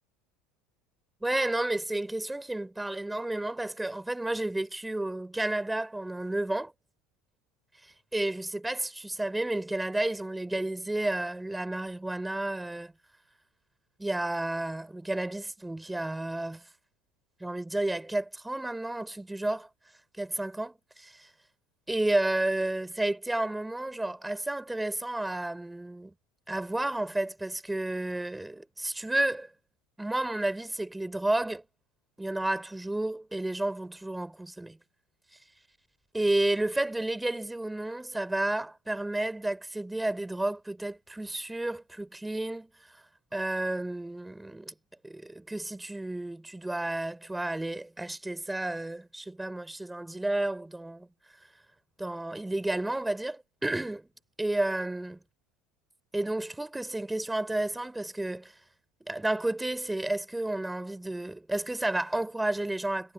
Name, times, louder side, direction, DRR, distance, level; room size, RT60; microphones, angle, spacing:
voice 1, 1.2-6.7 7.8-12.9 14.0-16.6 17.4-19.7 20.2-21.3 21.9-26.1 26.5-29.5 30.0-31.6 32.2-34.8 36.1-43.0 43.3-44.7 45.0-51.1 52.0-54.1 54.4-55.2 56.1-58.5 59.0-63.1, right 1 dB, 10° right, 4.2 m, -31 dB
hypercardioid pair, 75°, 0 cm